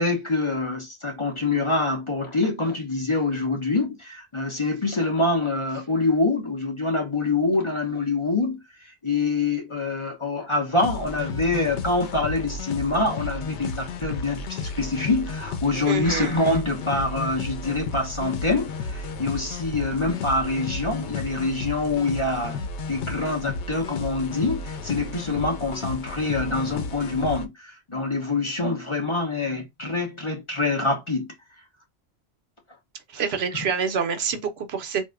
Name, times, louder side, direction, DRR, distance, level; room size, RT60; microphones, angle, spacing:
voice 1, 0.0-8.6 9.0-22.6 22.9-31.3, left 3 dB, 30° left, 0.9 m, -25 dB
sound 1, 10.8-27.5, left 4 dB, 85° left, 0.9 m, -33 dB
voice 2, 15.9-16.3 33.1-35.1, right 6 dB, 70° right, 0.9 m, -27 dB
3.8 x 2.7 x 2.2 m
omnidirectional pair, 1.1 m